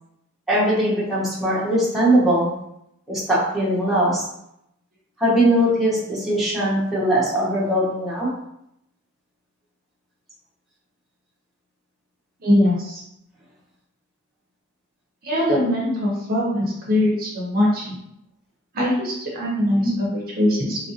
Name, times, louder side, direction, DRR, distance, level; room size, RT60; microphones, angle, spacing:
voice 1, 0.5-2.5 3.1-4.2 5.2-8.3, right 1 dB, ahead, -8 dB, 0.9 m, -20 dB
voice 2, 12.4-13.0 15.2-18.0 18.7-20.8, left 1 dB, 45° right, -3 dB, 0.7 m, -21 dB
3.0 x 2.6 x 2.7 m, 0.79 s
head